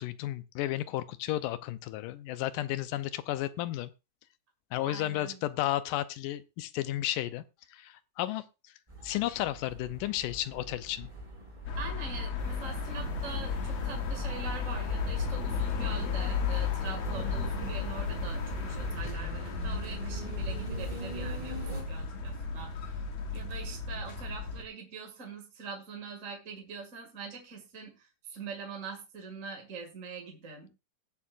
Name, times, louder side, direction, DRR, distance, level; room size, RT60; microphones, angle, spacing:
voice 1, 0.0-3.9 4.7-7.4 7.7-8.4 9.0-11.1, left 14 dB, 80° left, 13 dB, 2.2 m, -33 dB
voice 2, 4.9-5.4 11.8-23.0 23.3-30.7, right 5 dB, 30° right, 2 dB, 1.9 m, -43 dB
sound 1, 8.9-21.8, right 1 dB, 10° right, 3.3 m, -42 dB
light sunday city traffic, 11.7-24.6, left 5 dB, 60° left, 2.1 m, -34 dB
sound 2, 12.4-19.0, right 11 dB, 75° right, 2.1 m, -46 dB
19.0 x 7.3 x 2.5 m, 0.27 s
omnidirectional pair, 3.9 m